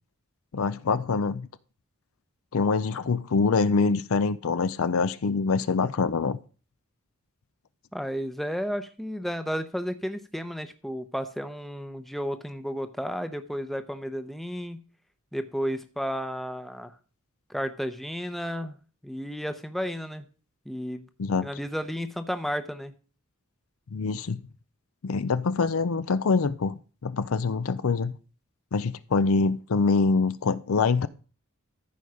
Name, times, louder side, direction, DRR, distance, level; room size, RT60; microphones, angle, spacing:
voice 1, 0.5-1.5 2.5-6.4 21.2-21.5 23.9-24.4 25.0-26.7 27.0-28.1 28.7-31.1, left 4 dB, 70° left, 0.5 m, -25 dB
voice 2, 7.9-14.8 15.3-16.9 17.5-18.8 19.0-20.3 20.7-21.1 21.4-22.9, equal, ahead, 0.7 m, -32 dB
14.0 x 5.4 x 4.9 m
head